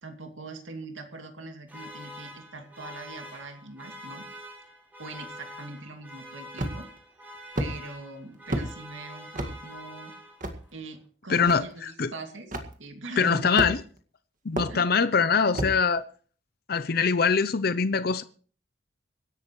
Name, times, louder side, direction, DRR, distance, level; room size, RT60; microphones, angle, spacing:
voice 1, 0.0-4.3 5.0-6.9 7.6-10.1 10.7-13.6 14.7-14.9, right 3 dB, 85° right, 2.5 m, -42 dB
sound 1, 1.7-10.7, equal, 10° right, 4.5 m, -45 dB
sound 2, 6.6-7.0 7.6-7.7 8.5-8.7 9.3-9.5 10.4-10.6 11.5-11.6 12.5-12.7 13.6-14.0 14.6-14.7 15.5-15.8, right 1 dB, 40° right, 1.9 m, -29 dB
voice 2, 11.3-12.1 13.2-13.8 14.4-16.0 16.7-18.2, left 5 dB, 50° left, 0.6 m, -23 dB
25.0 x 11.0 x 3.1 m
head